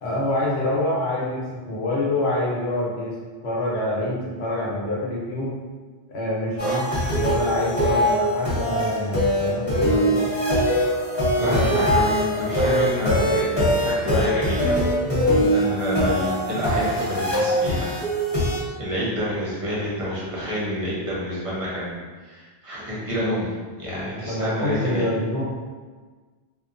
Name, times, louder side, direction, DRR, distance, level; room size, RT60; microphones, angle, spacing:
voice 1, 0.0-3.2 3.4-5.6 6.1-6.6 7.1-10.3 11.4-11.8 15.0-15.5 24.0-25.4, left 1 dB, 75° left, -6 dB, 1.0 m, -26 dB
sound 1, 6.6-18.6, equal, 25° left, 1.0 m, -22 dB
voice 2, 6.6-6.9 11.4-14.7 15.5-17.9 18.8-23.5 23.8-25.1, equal, 35° right, -8 dB, 0.7 m, -28 dB
2.8 x 2.2 x 2.4 m, 1.4 s
omnidirectional pair, 1.1 m